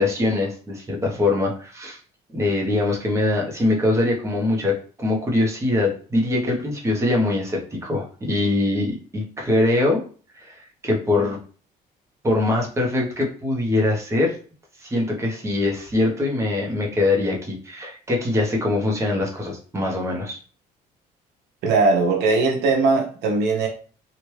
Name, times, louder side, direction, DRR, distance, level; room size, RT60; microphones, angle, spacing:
voice 1, 0.0-2.0 2.3-10.0 10.3-11.4 12.2-14.3 14.8-20.4, left 2 dB, 15° right, 1.0 m, -23 dB
voice 2, 21.6-23.7, right 3 dB, 85° right, 0.8 m, -19 dB
3.1 x 2.5 x 3.1 m
cardioid pair, 110°, 17 cm